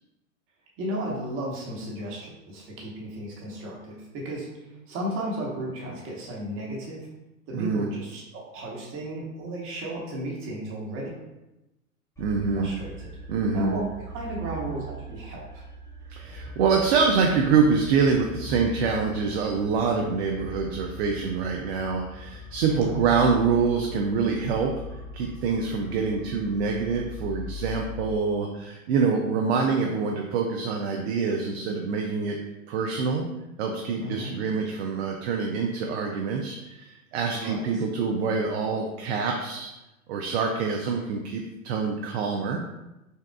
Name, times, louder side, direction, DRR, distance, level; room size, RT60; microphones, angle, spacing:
voice 1, 0.8-7.1 7.5-11.1 12.5-13.1 13.5-13.8 14.1-15.6 22.7-23.1 34.0-34.4 37.3-37.8, right 1 dB, 30° right, -3 dB, 1.1 m, -34 dB
voice 2, 7.5-7.9 12.2-12.7 13.3-13.8 16.1-24.7 25.1-32.4 32.7-33.3 33.6-39.7 40.1-42.7, right 5 dB, 50° right, 1 dB, 0.5 m, -25 dB
sound 1, 12.2-28.2, left 2 dB, 10° left, 0.9 m, -40 dB
5.4 x 2.3 x 2.3 m, 0.98 s
hypercardioid pair, 105°, 42 cm